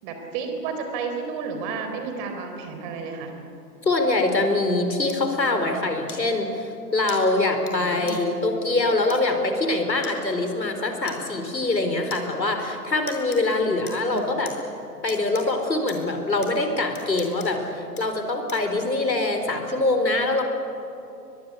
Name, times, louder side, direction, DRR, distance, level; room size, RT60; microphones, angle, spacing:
voice 1, 0.0-3.3 7.6-8.3 13.7-14.4, right 5 dB, 30° right, 5 dB, 4.0 m, -32 dB
voice 2, 3.8-6.7 6.9-14.5 15.0-20.4, left 2 dB, 85° left, 5 dB, 4.3 m, -24 dB
sound 1, 5.1-5.2 6.1-6.2 7.1-7.2 7.7-7.8 8.1-8.2 9.1-9.2 10.0-10.1 11.1-11.2 12.1-12.2 13.1-13.4 13.9-14.5 15.1-15.4 15.9-16.0 16.4-16.5 16.9-17.5 18.0-18.1 18.5-18.7, left 6 dB, 60° left, 6.2 m, -39 dB
22.5 x 22.0 x 8.2 m, 2.9 s
figure-of-eight pair, 130°, 50 cm